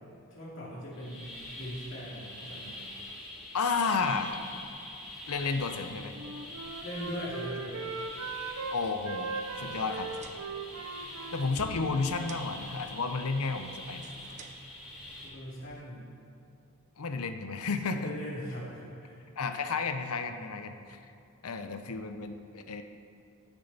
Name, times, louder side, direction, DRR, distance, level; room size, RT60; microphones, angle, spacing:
voice 1, 0.3-2.9 6.8-7.8 15.2-16.0 17.9-19.2, equal, 60° left, -6 dB, 2.4 m, -40 dB
sound 1, 0.9-15.3, left 1 dB, 5° right, 2.5 m, -45 dB
voice 2, 3.5-4.4 5.3-6.1 8.7-10.1 11.3-14.0 17.0-18.1 19.4-21.0 21.4-22.8, left 4 dB, 85° left, 7 dB, 0.7 m, -32 dB
Wind instrument woodwind instrument, 6.1-8.8 9.0-12.7, right 4 dB, 80° right, 0.7 m, -40 dB
sound 2, 9.9-15.8, right 3 dB, 30° right, 0.5 m, -52 dB
13.5 x 7.0 x 4.1 m, 2.6 s
head